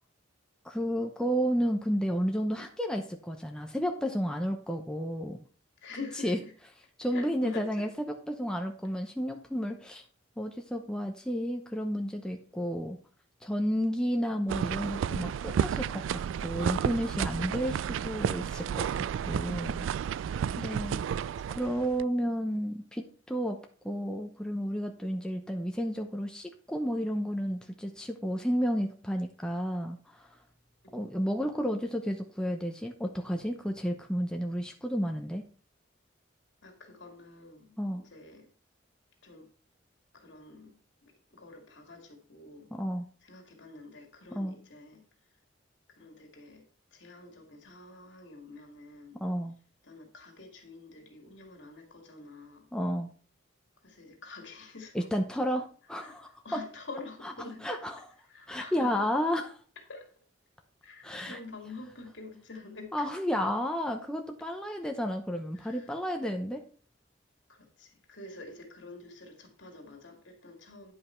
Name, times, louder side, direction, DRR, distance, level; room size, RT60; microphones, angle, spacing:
voice 1, 0.6-5.4 6.2-6.4 7.0-7.9 8.3-10.0 10.4-13.0 13.4-19.9 20.6-21.0 21.5-23.6 23.8-30.4 30.9-35.4 37.8-38.0 42.7-43.0 44.3-44.6 49.2-49.5 52.7-53.1 54.9-56.6 57.6-57.8 58.5-59.4 61.0-61.4 62.9-66.6, equal, 5° left, 0.8 m, -32 dB
voice 2, 5.8-6.5 7.1-7.9 20.6-20.9 21.2-21.6 30.8-31.1 36.6-38.5 39.2-39.5 40.1-42.7 43.2-45.0 45.9-49.2 49.8-52.7 53.8-55.1 55.9-57.7 58.2-59.1 59.8-60.1 60.8-63.1 65.5-66.0 67.5-70.9, left 3 dB, 65° left, 2.4 m, -47 dB
sound 1, 14.5-22.0, right 8 dB, 85° right, 0.3 m, -32 dB
9.9 x 5.6 x 4.4 m
head